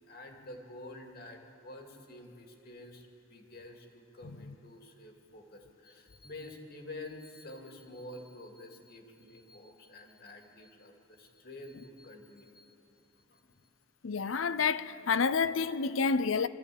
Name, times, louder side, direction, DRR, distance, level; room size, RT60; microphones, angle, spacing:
voice 1, 0.1-12.8 13.3-13.5, left 1 dB, 50° left, 2.5 m, -49 dB
voice 2, 14.0-16.5, left 5 dB, 90° left, 0.6 m, -29 dB
25.0 x 14.0 x 8.5 m
head